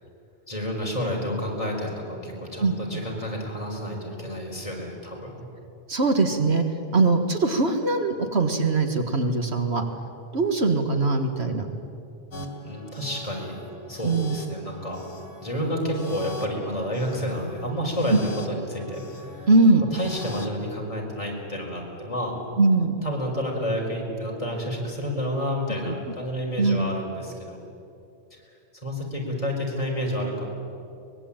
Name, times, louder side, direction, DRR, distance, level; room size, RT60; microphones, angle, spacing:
voice 1, 0.5-5.5 12.6-13.5 13.9-15.0 15.4-19.5 19.9-22.4 23.0-27.6 28.8-30.7, equal, 30° left, -2 dB, 5.0 m, -30 dB
voice 2, 5.9-6.6 6.9-9.8 10.3-11.7 14.0-14.4 18.1-18.2 19.5-19.8 22.6-22.9 26.6-26.9, right 3 dB, 65° right, 5 dB, 2.0 m, -21 dB
sound 1, 12.3-20.6, left 2 dB, 70° left, 2.8 m, -42 dB
24.0 x 21.0 x 8.9 m, 2.6 s
omnidirectional pair, 1.2 m